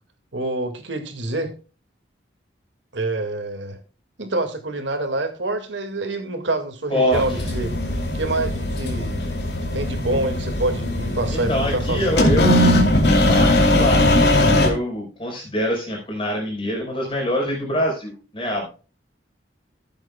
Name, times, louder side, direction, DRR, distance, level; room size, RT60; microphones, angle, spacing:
voice 1, 0.3-1.5 2.9-3.8 4.2-7.7 8.1-9.2 9.7-12.5, right 2 dB, 85° right, 6 dB, 2.0 m, -26 dB
voice 2, 6.9-7.4 11.3-12.6 13.3-18.8, equal, 30° left, 0 dB, 4.5 m, -25 dB
sound 1, 7.1-14.7, left 1 dB, 65° left, 2.6 m, -19 dB
15.5 x 8.0 x 2.2 m, 0.34 s
head